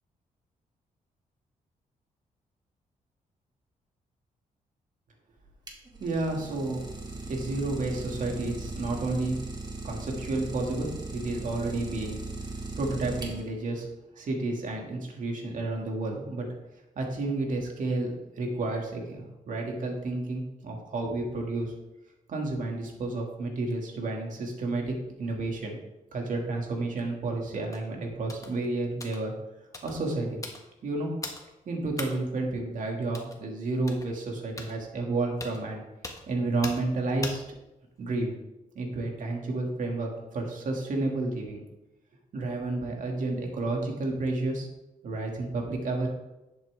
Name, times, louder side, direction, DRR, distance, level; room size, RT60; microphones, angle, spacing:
Idling, 5.4-13.7, right 3 dB, 30° right, 1.8 m, -38 dB
voice 1, 6.0-6.8 7.3-9.4 9.8-12.2 12.8-13.9 14.1-16.5 17.0-18.1 18.4-21.7 22.3-24.9 25.2-25.8 26.1-29.3 29.8-30.4 30.8-31.1 31.7-35.8 36.3-37.4 38.0-38.3 38.7-41.6 42.3-44.7 45.0-46.1, right 2 dB, 65° right, 0 dB, 2.3 m, -31 dB
sound 1, 27.7-27.9 28.3-28.6 29.0-29.2 29.7-30.0 30.4-30.7 31.2-31.4 32.0-32.2 33.1-33.4 33.9-34.1 34.6-34.7 35.4-35.6 36.0-36.2 36.6-36.9 37.2-37.4 38.0-38.3, left 2 dB, 25° left, 1.5 m, -39 dB
11.0 x 7.9 x 3.6 m, 0.97 s
cardioid pair, 110°, 14 cm